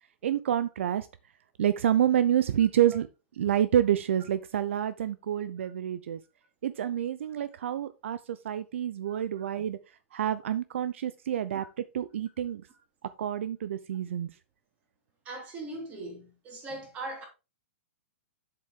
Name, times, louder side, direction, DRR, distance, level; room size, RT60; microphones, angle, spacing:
voice 1, 0.2-1.1 1.6-3.1 3.4-6.2 6.6-9.8 10.1-12.6 13.2-14.3, right 10 dB, 70° right, 0.6 m, -28 dB
voice 2, 9.1-9.4 15.2-17.3, right 2 dB, 20° right, 3.2 m, -40 dB
7.7 x 7.6 x 3.7 m
hypercardioid pair, 165°, 7 cm